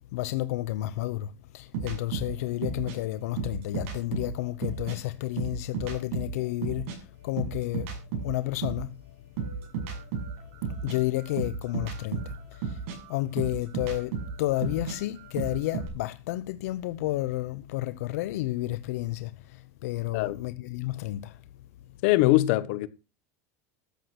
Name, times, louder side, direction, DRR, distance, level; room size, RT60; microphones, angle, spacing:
voice 1, 0.1-7.9 8.2-9.0 10.8-12.8 13.1-21.4, left 17 dB, 75° left, 0.7 m, -31 dB
sound 1, 1.7-5.0 5.3-8.9 9.4-15.9, right 5 dB, 60° right, 6.9 m, -34 dB
voice 2, 22.0-22.9, left 17 dB, 55° left, 1.1 m, -22 dB
13.5 x 7.9 x 6.0 m
supercardioid pair, 175°, 8 cm